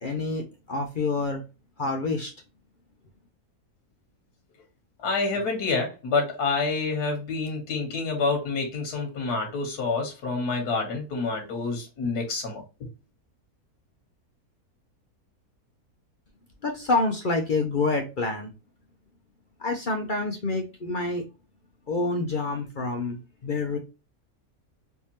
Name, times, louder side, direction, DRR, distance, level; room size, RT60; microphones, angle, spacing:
voice 1, 0.0-1.4 1.8-2.3 16.6-18.5 19.6-21.2 21.9-23.8, left 3 dB, 50° left, 0.6 m, -27 dB
voice 2, 5.0-12.6, left 4 dB, 90° left, 1.6 m, -28 dB
3.6 x 3.2 x 2.7 m
omnidirectional pair, 1.6 m